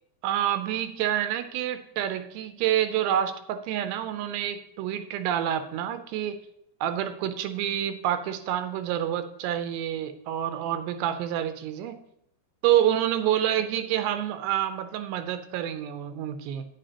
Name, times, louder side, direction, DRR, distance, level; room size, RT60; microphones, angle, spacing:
voice 1, 0.2-6.4 6.8-12.0 12.6-16.7, right 11 dB, 85° right, 10 dB, 2.7 m, -28 dB
10.0 x 9.7 x 2.8 m, 0.76 s
omnidirectional pair, 4.9 m